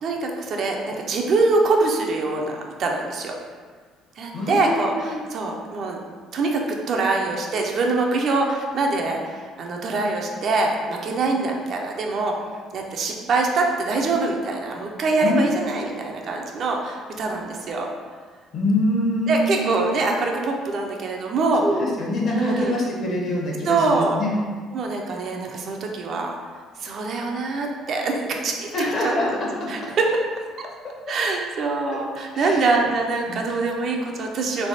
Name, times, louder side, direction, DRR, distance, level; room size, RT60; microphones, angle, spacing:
voice 1, 0.0-3.3 4.2-6.0 6.3-12.3 12.7-17.9 19.3-21.6 22.3-22.8 23.7-24.2 24.7-26.4 26.8-28.7 29.0-29.1 29.7-30.1 30.6-30.7 31.1-34.7, right 3 dB, 45° right, 1 dB, 0.5 m, -24 dB
voice 2, 4.3-5.2 15.2-15.6 18.5-19.6 21.6-24.3 28.7-29.5 32.3-32.9 33.3-33.4, left 1 dB, 45° left, -2 dB, 1.0 m, -24 dB
3.4 x 3.1 x 4.0 m, 1.5 s
cardioid pair, 135°, 0 cm